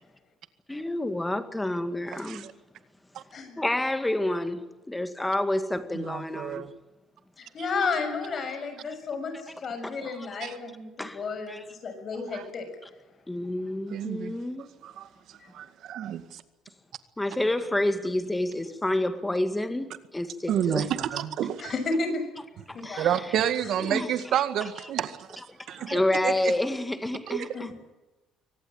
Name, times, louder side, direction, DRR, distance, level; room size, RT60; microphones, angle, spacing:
voice 1, 0.7-2.4 3.6-6.7 10.2-10.3 11.0-11.2 11.5-11.6 13.3-14.7 17.2-20.9 22.7-23.1 23.9-24.4 25.8-27.7, left 1 dB, 10° left, 2.0 m, -29 dB
voice 2, 2.1-2.5 3.1-3.2 5.9-6.7 10.4-10.5 12.3-12.5 13.9-14.3 14.8-16.4 20.5-21.7 23.0-25.3 25.7-26.5 27.3-27.5, right 10 dB, 60° right, 1.9 m, -30 dB
voice 3, 7.4-12.7 15.4-15.5 21.6-22.2 22.7-23.1 23.6-23.8 27.5-27.7, left 4 dB, 40° left, 6.8 m, -32 dB
24.5 x 18.5 x 8.9 m
cardioid pair, 135°, 0 cm